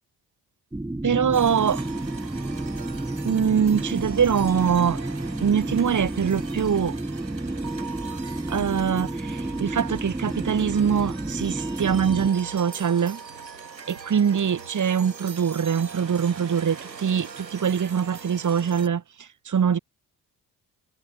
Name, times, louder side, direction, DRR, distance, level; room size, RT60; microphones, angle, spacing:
sound 1, 0.7-12.3, right 1 dB, 5° right, 1.3 m, -31 dB
voice 1, 1.0-1.8 3.2-5.0 5.4-7.0 8.5-13.2 13.9-19.8, right 7 dB, 35° right, 2.6 m, -23 dB
sound 2, 1.3-18.9, right 5 dB, 85° right, 2.3 m, -41 dB
figure-of-eight pair, 40°, 49 cm